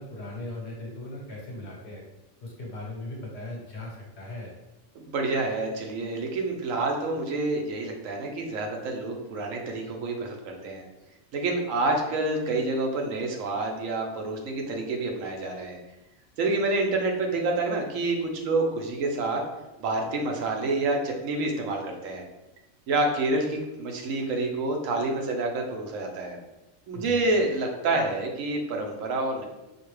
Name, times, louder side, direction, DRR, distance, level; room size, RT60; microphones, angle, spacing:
voice 1, 0.0-2.0 2.4-4.5 26.9-27.3, left 1 dB, 60° left, -2 dB, 1.2 m, -38 dB
voice 2, 5.0-10.8 11.3-15.8 16.4-19.4 19.8-22.2 22.9-26.4 26.9-29.5, right 2 dB, 90° right, 2 dB, 1.1 m, -28 dB
4.5 x 2.2 x 3.1 m, 1.0 s
omnidirectional pair, 1.3 m